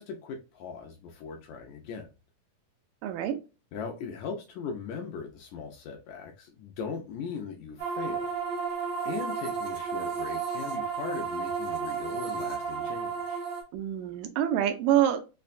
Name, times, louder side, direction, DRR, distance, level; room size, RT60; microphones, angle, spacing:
voice 1, 0.0-2.1 3.7-8.3 9.1-13.4, left 5 dB, 80° left, 1.7 m, -39 dB
voice 2, 3.0-3.4 13.7-15.2, right 11 dB, 85° right, 2.3 m, -26 dB
sound 1, 7.8-13.6, right 5 dB, 60° right, 1.7 m, -32 dB
5.7 x 2.2 x 2.4 m
omnidirectional pair, 3.8 m